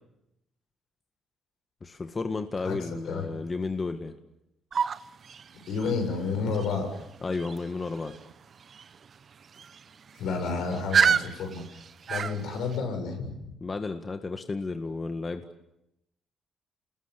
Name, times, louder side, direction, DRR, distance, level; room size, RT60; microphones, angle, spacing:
voice 1, 1.8-4.1 7.2-8.1 13.6-15.4, left 3 dB, 30° left, 7 dB, 1.8 m, -32 dB
voice 2, 2.6-3.3 5.7-6.9 10.1-11.8 12.1-13.5, left 4 dB, 80° left, 4 dB, 7.2 m, -31 dB
sound 1, 4.7-12.8, right 7 dB, 50° right, 1.1 m, -31 dB
28.5 x 20.5 x 8.2 m, 0.86 s
cardioid pair, 90°, 0 cm